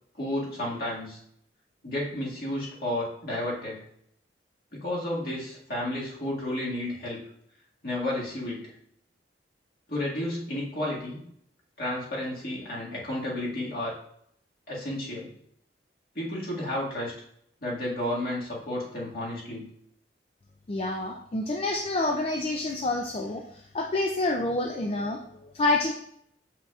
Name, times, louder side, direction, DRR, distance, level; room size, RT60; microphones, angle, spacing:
voice 1, 0.1-1.2 1.8-3.8 4.7-7.2 7.8-8.6 9.9-11.2 11.8-14.0 14.7-15.3 16.2-17.1 17.6-19.7, left 1 dB, 55° left, -5 dB, 2.0 m, -32 dB
voice 2, 20.7-25.9, left 2 dB, 35° left, 2 dB, 0.5 m, -28 dB
6.7 x 5.7 x 2.4 m, 0.69 s
head